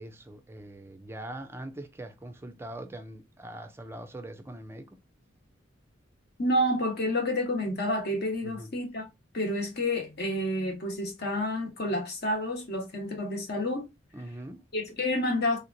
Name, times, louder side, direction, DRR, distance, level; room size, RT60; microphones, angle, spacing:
voice 1, 0.0-5.0 8.4-8.7 14.1-14.6, right 1 dB, 10° right, 0.4 m, -42 dB
voice 2, 6.4-9.1 9.3-13.9 14.7-15.6, left 1 dB, 50° left, 1.0 m, -29 dB
3.4 x 2.8 x 2.5 m
head